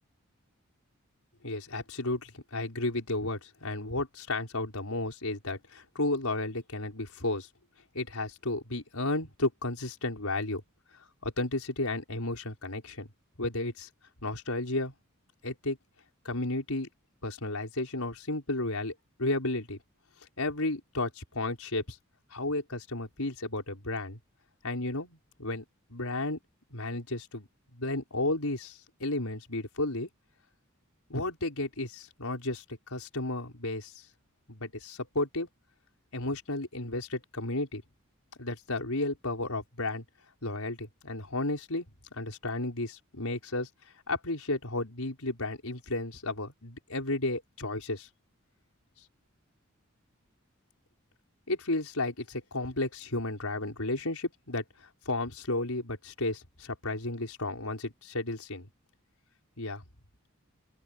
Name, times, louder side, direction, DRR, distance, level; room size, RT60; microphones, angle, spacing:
voice 1, 1.4-7.5 7.9-10.6 11.2-13.1 13.4-13.9 14.2-14.9 15.4-15.8 16.3-16.9 17.2-19.8 20.4-22.0 22.3-24.2 24.6-25.6 25.9-26.4 26.7-30.1 31.1-33.9 34.5-35.5 36.1-37.8 38.4-40.0 40.4-41.9 42.1-43.7 44.1-48.1 51.5-58.7 59.6-59.8, left 2 dB, 85° left, 5.3 m, -33 dB
open air
head